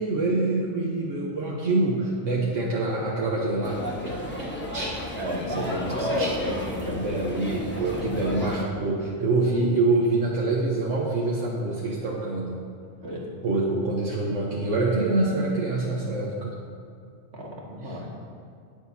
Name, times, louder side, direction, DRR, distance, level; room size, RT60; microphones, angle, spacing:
voice 1, 0.0-5.0 5.5-6.3 6.9-12.6 13.4-16.5, right 2 dB, 80° right, -4 dB, 1.4 m, -26 dB
sound 1, 3.6-8.6, left 1 dB, 10° left, 1.2 m, -32 dB
voice 2, 5.2-7.2 7.9-8.5 13.0-13.3 17.3-18.1, equal, 60° right, -3 dB, 2.0 m, -33 dB
19.5 x 6.8 x 2.8 m, 2.3 s
omnidirectional pair, 1.3 m